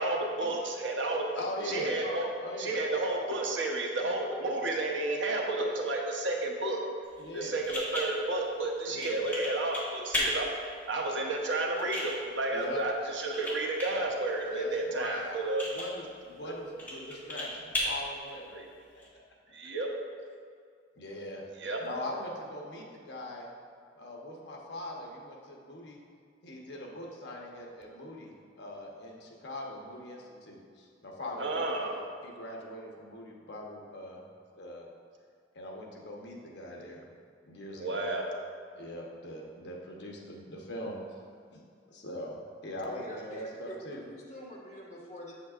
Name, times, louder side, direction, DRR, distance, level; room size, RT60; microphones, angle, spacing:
voice 1, 0.0-1.2 1.6-2.3 2.5-6.8 7.3-10.5 10.9-15.6 18.5-18.6 19.5-19.9 21.6-21.8 31.4-31.9 37.8-38.2, right 2 dB, 85° right, 0 dB, 1.0 m, -31 dB
voice 2, 1.3-2.0 2.4-2.9 7.2-7.6 8.9-9.3 12.5-12.8 14.5-15.3 15.7-18.6 18.9-19.4 21.0-21.5 21.8-23.5 23.9-26.0 26.4-34.2 34.6-34.9 35.5-37.0 37.5-38.1 38.7-41.6 41.9-44.0, left 1 dB, 70° left, -1 dB, 1.0 m, -41 dB
sound 1, 7.0-19.1, left 1 dB, 10° left, 1.8 m, -38 dB
voice 3, 42.9-43.8 44.0-45.3, left 1 dB, 40° left, -5 dB, 1.4 m, -46 dB
7.6 x 7.4 x 2.5 m, 2.2 s
head